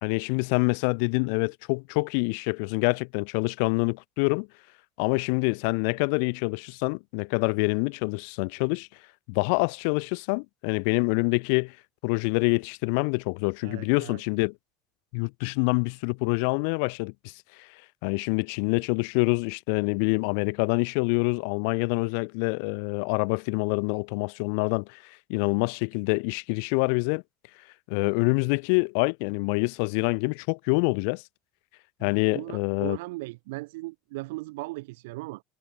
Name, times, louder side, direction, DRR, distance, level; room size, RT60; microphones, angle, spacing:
voice 1, 0.0-4.5 5.0-8.9 9.3-11.8 12.0-14.5 15.1-17.1 17.6-17.7 18.0-27.2 27.9-31.2 32.0-33.0, left 39 dB, 60° left, 1.7 m, -26 dB
voice 2, 13.6-14.2 32.0-35.4, right 22 dB, 75° right, 2.0 m, -38 dB
cardioid pair, 170°, 0 cm